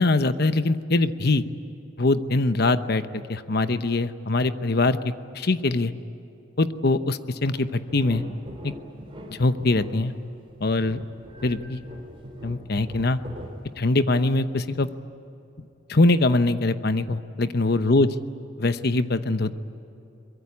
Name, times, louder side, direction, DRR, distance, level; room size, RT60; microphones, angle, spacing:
voice 1, 0.0-1.4 2.0-5.0 5.3-5.9 6.6-8.2 9.3-10.1 10.6-11.0 11.4-11.8 12.4-13.2 13.8-14.9 15.9-18.1 18.6-19.5, left 2 dB, 55° left, 11 dB, 0.9 m, -22 dB
sound 1, 7.5-14.2 14.7-14.8, equal, 30° right, 4.0 m, -41 dB
23.5 x 22.0 x 9.5 m, 2.9 s
head